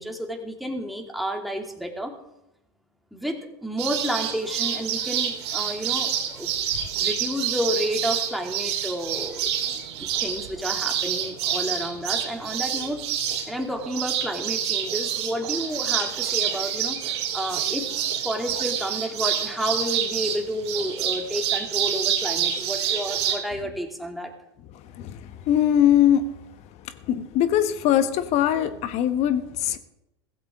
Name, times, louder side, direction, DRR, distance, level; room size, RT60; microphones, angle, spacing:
voice 1, 0.0-2.1 3.1-6.5 6.9-9.5 10.0-13.0 13.5-17.9 18.2-24.3, equal, ahead, 1 dB, 2.6 m, -30 dB
sound 1, 3.8-23.4, right 9 dB, 75° right, 2.8 m, -27 dB
voice 2, 25.0-26.3 27.1-29.8, left 10 dB, 50° left, 11 dB, 1.4 m, -21 dB
16.0 x 15.0 x 3.7 m, 0.88 s
hypercardioid pair, 90°, 14 cm